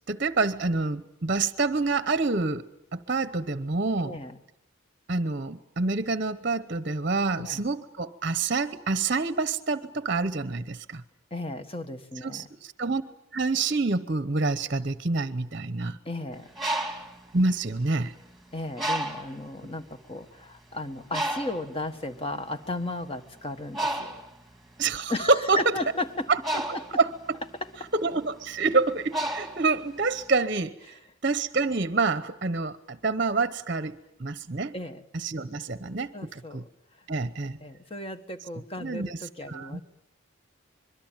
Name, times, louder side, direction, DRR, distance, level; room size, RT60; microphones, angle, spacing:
voice 1, 0.1-2.6 2.9-4.2 5.1-11.0 12.2-13.0 13.3-16.0 17.3-18.1 24.8-25.7 26.3-26.4 27.0-27.4 27.9-30.8 31.2-34.7 35.1-36.6 37.1-37.6 38.8-39.2 39.5-39.8, right 3 dB, 40° right, 13 dB, 0.9 m, -27 dB
voice 2, 4.0-4.4 7.4-7.6 11.3-12.5 16.0-16.5 18.5-24.2 25.1-26.3 26.5-26.6 27.6-27.9 34.7-35.0 36.1-36.7 37.6-39.8, left 2 dB, 25° left, 9 dB, 1.5 m, -35 dB
Bird, 16.4-18.2 18.8-19.5 20.1-20.3 20.5-30.3, right 1 dB, ahead, 2.3 m, -33 dB
25.5 x 22.5 x 9.0 m, 0.77 s
head